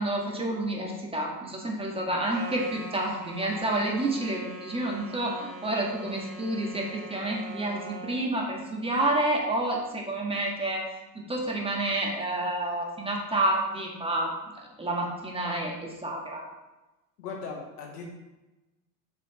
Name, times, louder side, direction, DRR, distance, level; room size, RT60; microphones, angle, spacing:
voice 1, 0.0-10.8 11.1-14.3 14.8-16.4, right 1 dB, 10° right, -1 dB, 2.0 m, -29 dB
sound 1, 2.3-8.3, right 3 dB, 75° right, 1.2 m, -42 dB
voice 2, 17.2-18.0, left 5 dB, 65° left, 0 dB, 1.6 m, -38 dB
8.1 x 6.8 x 3.3 m, 1.0 s
figure-of-eight pair, 65°, 50 cm